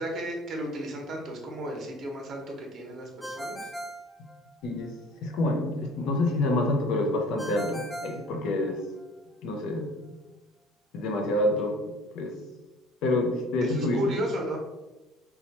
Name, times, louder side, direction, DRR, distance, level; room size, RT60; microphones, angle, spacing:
voice 1, 0.0-3.7 13.6-14.6, equal, 35° right, 1 dB, 0.8 m, -34 dB
Ringtone, 3.2-4.9 7.4-9.1, right 1 dB, ahead, 0.4 m, -39 dB
voice 2, 5.2-8.8 9.4-10.2 10.9-11.8 12.1-12.3 13.0-14.0, left 2 dB, 65° left, 2 dB, 0.6 m, -27 dB
3.0 x 2.3 x 4.0 m, 1.1 s
cardioid pair, 145°, 0 cm